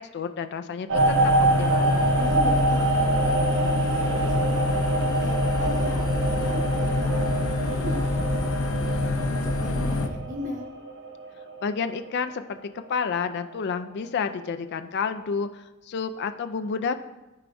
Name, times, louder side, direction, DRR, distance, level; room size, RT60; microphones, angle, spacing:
voice 1, 0.0-2.0 11.6-16.9, left 5 dB, 55° left, 9 dB, 0.4 m, -30 dB
sound 1, 0.9-10.1, left 3 dB, 90° left, 0.7 m, -26 dB
sound 2, 0.9-12.2 12.6-13.0, right 3 dB, 65° right, 0.7 m, -26 dB
voice 2, 2.2-4.8 5.2-9.1 9.4-10.6, left 1 dB, 40° right, 0 dB, 1.2 m, -38 dB
13.0 x 4.7 x 2.6 m, 1.0 s
head